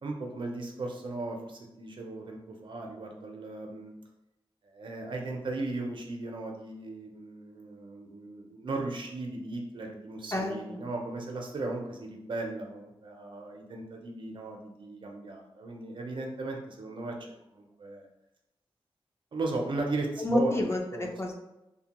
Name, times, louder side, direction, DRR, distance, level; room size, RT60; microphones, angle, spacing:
voice 1, 0.0-3.9 4.6-17.1 17.5-18.0 19.3-20.6 20.9-21.1, right 2 dB, 55° right, 1 dB, 0.5 m, -36 dB
voice 2, 10.3-10.8 20.2-21.3, left 1 dB, 25° left, 1 dB, 0.4 m, -30 dB
2.7 x 2.1 x 2.8 m, 0.92 s
wide cardioid pair, 150°, 10 cm